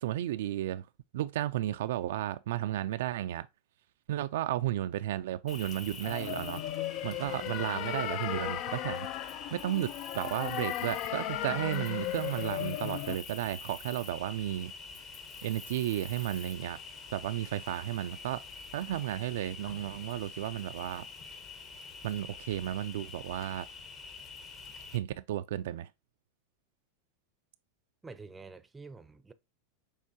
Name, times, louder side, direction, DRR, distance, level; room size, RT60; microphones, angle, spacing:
voice 1, 0.0-0.9 1.1-3.5 4.1-6.6 7.0-9.1 9.5-14.7 15.4-16.8 17.1-18.4 18.7-21.1 22.0-23.7 24.9-25.9, right 13 dB, 75° right, 0.3 m, -33 dB
Cricket, 5.5-25.0, left 4 dB, 35° left, 1.0 m, -46 dB
sound 1, 6.0-13.2, left 13 dB, 50° left, 0.3 m, -36 dB
voice 2, 28.0-29.3, right 4 dB, 15° right, 0.5 m, -48 dB
6.5 x 2.9 x 2.7 m
hypercardioid pair, 115°, 0 cm